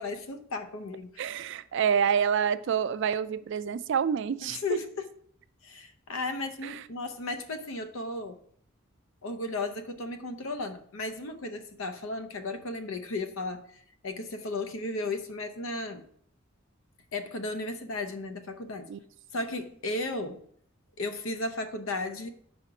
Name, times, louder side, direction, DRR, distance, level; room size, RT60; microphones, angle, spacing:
voice 1, 0.0-1.2 4.4-5.1 5.6-8.4 9.2-16.1 17.1-18.9 19.3-20.4 21.0-22.3, left 2 dB, 75° left, 0.7 m, -35 dB
voice 2, 1.2-4.8 6.6-6.8 18.9-19.0, right 7 dB, 60° right, 0.3 m, -27 dB
5.0 x 4.3 x 5.7 m
head